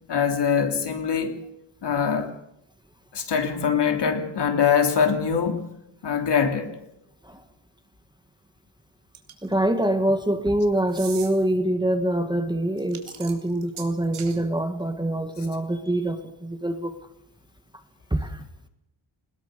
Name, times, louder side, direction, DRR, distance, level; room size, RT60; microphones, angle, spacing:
voice 1, 0.1-1.4 1.8-2.3 3.1-5.6 6.0-6.8, left 7 dB, 55° left, 3.2 m, -23 dB
sound 1, 9.1-9.5 10.9-11.3 12.8-14.4, right 8 dB, 80° right, 3.7 m, -40 dB
voice 2, 9.4-16.9 18.1-18.4, right 1 dB, 10° right, 1.6 m, -25 dB
21.5 x 20.5 x 6.8 m
wide cardioid pair, 155°, 48 cm